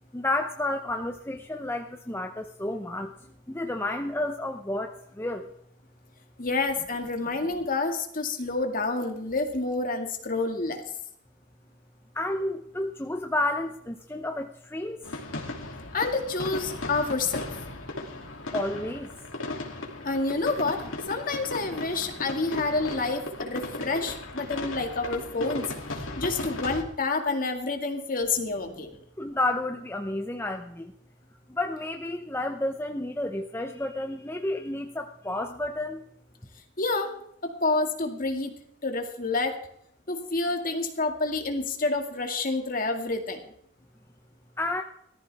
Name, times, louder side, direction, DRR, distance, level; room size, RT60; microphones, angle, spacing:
voice 1, 0.1-3.1 3.5-5.5 12.1-15.1 18.5-19.1 29.2-30.9 31.5-36.0 44.6-44.8, left 1 dB, 10° left, 4 dB, 0.7 m, -31 dB
voice 2, 6.4-10.8 15.9-17.4 20.0-25.7 26.2-29.0 36.8-37.1 37.4-38.5 38.8-39.6 40.1-43.5, left 3 dB, 45° left, 4 dB, 2.2 m, -28 dB
sound 1, 15.0-26.8, left 2 dB, 85° left, 2.8 m, -36 dB
18.5 x 14.0 x 3.5 m, 0.73 s
head